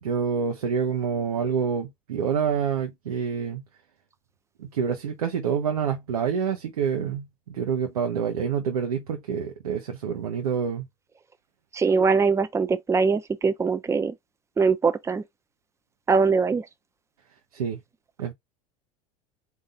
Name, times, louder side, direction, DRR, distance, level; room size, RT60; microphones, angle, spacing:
voice 1, 0.0-3.6 4.6-10.8 17.5-17.8 18.2-18.3, right 7 dB, 90° right, 0.9 m, -27 dB
voice 2, 11.7-14.1 14.6-15.2 16.1-16.7, right 5 dB, 15° right, 0.6 m, -22 dB
4.0 x 2.6 x 3.8 m
hypercardioid pair, 95°, 18 cm